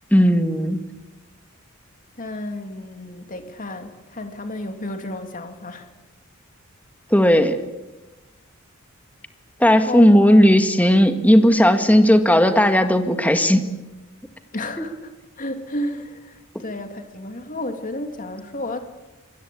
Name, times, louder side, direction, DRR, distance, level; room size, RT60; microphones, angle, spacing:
voice 1, 0.1-0.8 7.1-7.6 9.6-13.7, equal, 5° left, 7 dB, 1.8 m, -15 dB
voice 2, 2.2-5.9 9.7-10.2 14.5-15.1 15.4-18.8, left 1 dB, 40° left, 6 dB, 2.7 m, -32 dB
25.0 x 21.0 x 8.6 m, 1.1 s
head